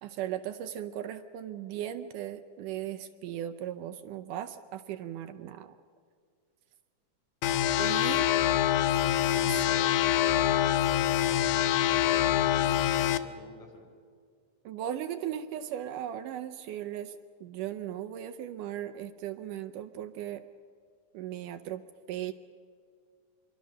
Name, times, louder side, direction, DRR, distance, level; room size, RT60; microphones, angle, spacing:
voice 1, 0.0-5.7 7.8-8.3 9.4-9.6 14.7-20.4 21.1-21.8 22.1-22.3, right 11 dB, 75° right, 8 dB, 2.2 m, -37 dB
sound 1, 7.4-13.2, left 12 dB, 75° left, 2.0 m, -25 dB
voice 2, 7.8-13.9, left 2 dB, 45° left, 1 dB, 5.2 m, -47 dB
26.5 x 23.0 x 6.5 m, 2.1 s
omnidirectional pair, 3.9 m